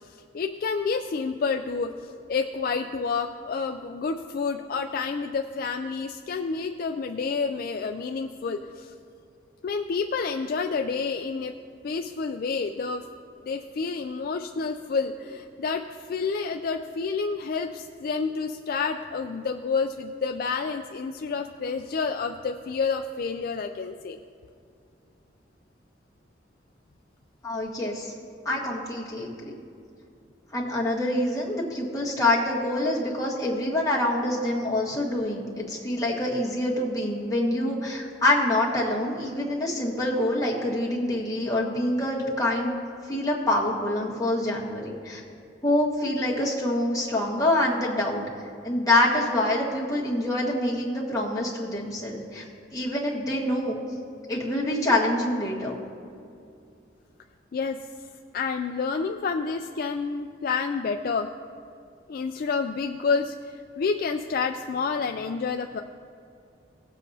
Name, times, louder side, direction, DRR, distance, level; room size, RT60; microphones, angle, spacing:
voice 1, 0.0-8.9 9.6-11.5 11.8-13.0 13.4-24.2 57.5-57.8 58.3-61.3 62.1-65.8, left 5 dB, 50° left, 5 dB, 0.3 m, -29 dB
voice 2, 27.4-28.1 28.4-29.5 30.5-42.8 43.1-45.2 45.6-48.2 48.6-52.4 52.7-53.8 54.3-55.8, left 1 dB, 20° left, -5 dB, 1.6 m, -26 dB
18.0 x 7.3 x 2.8 m, 2.4 s
head